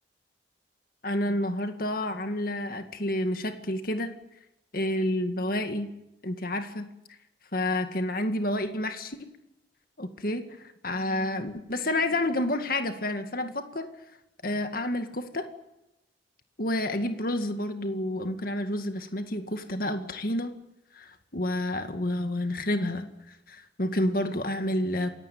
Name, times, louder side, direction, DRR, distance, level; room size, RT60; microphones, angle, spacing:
voice 1, 1.0-4.1 4.7-5.9 6.2-6.9 7.5-9.3 10.0-13.9 14.4-15.5 16.6-20.5 20.9-25.1, left 1 dB, 55° left, 7 dB, 2.1 m, -29 dB
28.0 x 16.5 x 9.4 m, 0.90 s
head